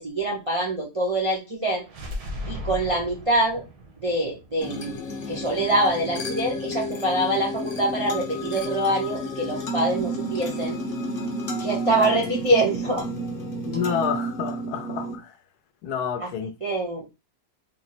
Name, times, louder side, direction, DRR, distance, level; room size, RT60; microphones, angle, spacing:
voice 1, 0.0-1.8 2.5-3.6 4.0-5.0 5.3-10.8 11.6-13.1 16.2-16.3 16.6-17.1, right 1 dB, 40° right, 0.4 m, -25 dB
sound 1, 1.8-5.7, left 1 dB, 75° right, 1.6 m, -37 dB
sound 2, 4.6-15.2, equal, 40° left, 0.9 m, -31 dB
voice 2, 13.7-15.3 15.8-16.5, left 7 dB, 75° left, 1.1 m, -29 dB
4.2 x 2.1 x 4.1 m
omnidirectional pair, 1.7 m